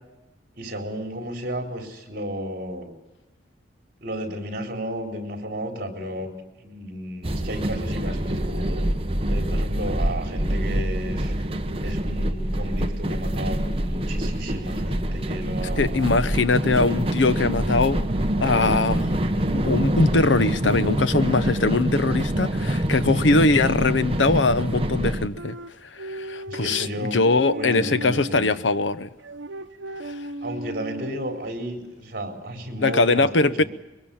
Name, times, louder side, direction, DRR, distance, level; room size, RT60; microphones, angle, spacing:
voice 1, 0.5-2.9 4.0-8.9 9.3-11.3 11.8-16.7 26.5-28.6 30.4-33.6, equal, 50° right, 4.2 m, -33 dB
sound 1, 7.2-25.3, right 1 dB, 30° right, 1.2 m, -25 dB
voice 2, 15.8-18.0 18.4-19.2 19.5-25.6 26.0-29.1 30.1-30.2 32.8-33.6, left 3 dB, 75° left, 0.9 m, -21 dB
sound 2, 25.4-28.5 29.2-31.5, right 1 dB, 85° right, 1.0 m, -36 dB
22.5 x 22.5 x 7.2 m
head